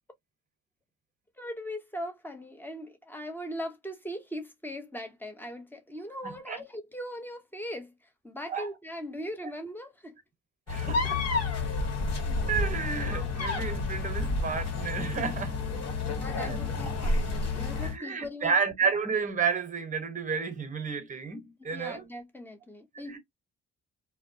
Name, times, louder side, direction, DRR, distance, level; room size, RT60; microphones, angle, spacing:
voice 1, 1.4-7.9 8.2-10.2 16.1-18.5 21.6-23.2, equal, 5° left, 0.8 m, -40 dB
voice 2, 6.2-6.6 8.5-8.7 10.7-11.3 12.0-12.2 12.4-15.6 16.4-16.6 17.8-22.0 22.9-23.2, right 5 dB, 25° right, 1.0 m, -31 dB
sound 1, 10.7-18.0, left 3 dB, 55° left, 1.1 m, -30 dB
2.1 x 2.1 x 2.7 m
cardioid pair, 90°, 30 cm